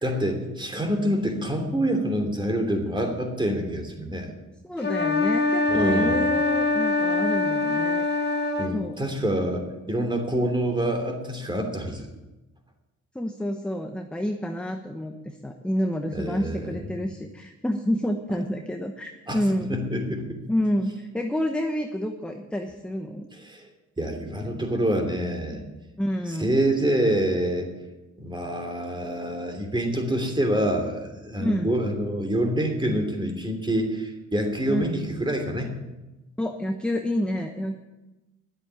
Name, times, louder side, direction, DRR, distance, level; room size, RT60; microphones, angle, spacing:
voice 1, 0.0-4.3 5.7-6.2 8.6-12.1 16.1-16.7 19.3-19.4 19.7-20.4 23.3-23.7 24.0-25.6 26.3-27.7 28.2-35.8, right 1 dB, 15° right, 3 dB, 3.0 m, -26 dB
voice 2, 4.6-8.0 8.7-9.0 13.1-15.1 15.4-19.8 20.5-23.3 26.0-26.6 31.4-31.7 34.7-34.9 36.4-37.8, equal, 5° left, 4 dB, 1.0 m, -28 dB
sound 1, 4.8-8.8, left 3 dB, 35° left, 1.9 m, -23 dB
11.0 x 8.1 x 9.0 m, 1.1 s
cardioid pair, 90°, 30 cm